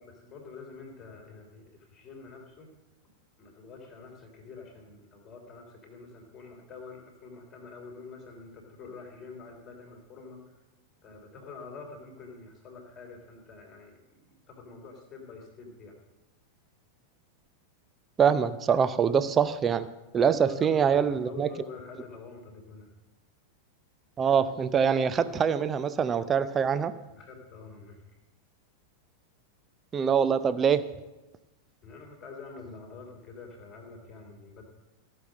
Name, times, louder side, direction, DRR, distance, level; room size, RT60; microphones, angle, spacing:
voice 1, 0.0-2.7 3.4-10.5 11.0-16.0 20.1-22.9 27.1-28.0 31.8-34.6, left 4 dB, 25° left, 0 dB, 3.2 m, -47 dB
voice 2, 18.2-19.9 20.1-21.5 24.2-27.0 29.9-30.9, right 7 dB, 20° right, 13 dB, 0.5 m, -24 dB
16.0 x 6.5 x 6.3 m, 1.1 s
figure-of-eight pair, 90°, 0 cm